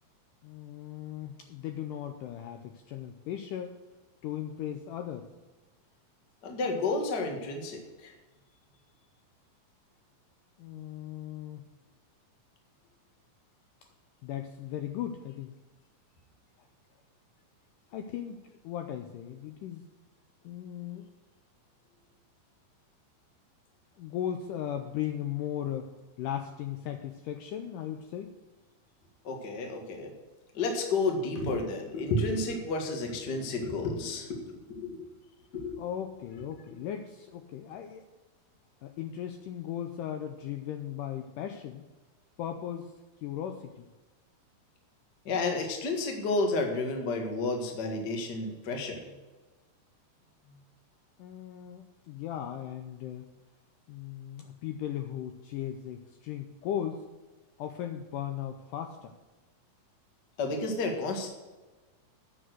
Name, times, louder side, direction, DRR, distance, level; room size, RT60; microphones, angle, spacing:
voice 1, 0.4-3.8 4.2-5.3 10.6-11.6 14.2-15.5 17.9-19.9 20.4-21.1 24.0-25.9 26.2-28.4 35.8-38.1 38.8-41.9 42.4-42.9 43.2-43.9 51.2-53.3 53.9-57.1 57.6-59.2, left 10 dB, 80° left, 6 dB, 2.0 m, -37 dB
voice 2, 6.4-8.1 29.2-30.1 30.5-35.1 35.5-35.8 45.2-49.0 60.4-61.3, left 3 dB, 45° left, 3 dB, 1.3 m, -31 dB
9.5 x 6.3 x 7.9 m, 1.2 s
omnidirectional pair, 4.3 m